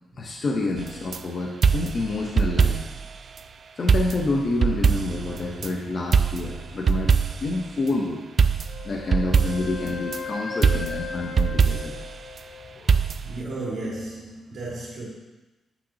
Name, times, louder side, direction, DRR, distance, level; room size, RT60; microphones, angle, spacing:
voice 1, 0.2-2.8 3.8-8.2 8.8-11.9 12.7-13.1, left 2 dB, 45° left, 0 dB, 0.7 m, -28 dB
sound 1, 0.8-1.2 1.6-3.1 3.4-3.5 3.9-5.7 6.1-7.6 8.4-10.2 10.6-12.1 12.9-13.4, right 6 dB, 50° right, 0.3 m, -22 dB
Wind instrument woodwind instrument, 8.7-12.9, left 5 dB, 65° left, 0.9 m, -36 dB
voice 2, 13.2-15.1, right 2 dB, 65° right, -6 dB, 2.1 m, -33 dB
8.3 x 5.9 x 2.8 m, 1.1 s
cardioid pair, 110°, 0 cm